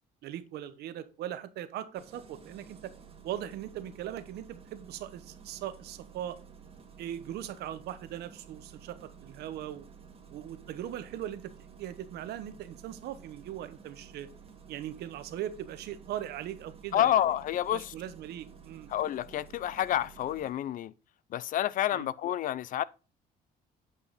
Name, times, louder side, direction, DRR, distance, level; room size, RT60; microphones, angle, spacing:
voice 1, 0.2-2.9 3.2-6.4 7.0-9.9 10.3-11.5 11.8-14.3 14.7-17.2 17.7-18.9 21.9-22.1, right 11 dB, 75° right, 1.0 m, -39 dB
Engine starting, 1.9-20.5, right 6 dB, 35° right, 1.8 m, -53 dB
voice 2, 16.9-17.9 18.9-20.9 21.3-22.8, left 12 dB, 55° left, 0.5 m, -29 dB
8.2 x 5.6 x 3.9 m
cardioid pair, 110°, 17 cm